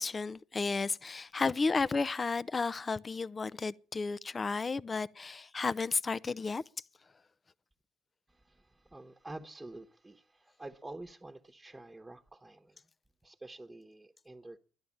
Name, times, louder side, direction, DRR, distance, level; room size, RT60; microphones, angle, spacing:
voice 1, 0.0-6.6, left 4 dB, 35° left, 0.6 m, -33 dB
voice 2, 8.3-12.8 13.2-14.6, right 2 dB, 15° right, 1.2 m, -48 dB
12.0 x 10.5 x 8.6 m
supercardioid pair, 60°, 0 cm